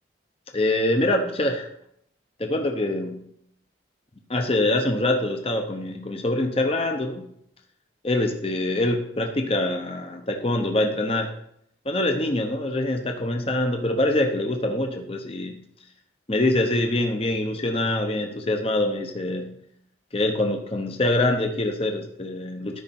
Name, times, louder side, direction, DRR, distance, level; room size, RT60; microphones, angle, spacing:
voice 1, 0.5-1.7 2.4-3.3 4.3-7.3 8.0-11.3 11.8-15.6 16.3-19.6 20.1-22.8, left 1 dB, 30° left, 4 dB, 0.8 m, -24 dB
13.0 x 5.6 x 4.3 m, 0.73 s
head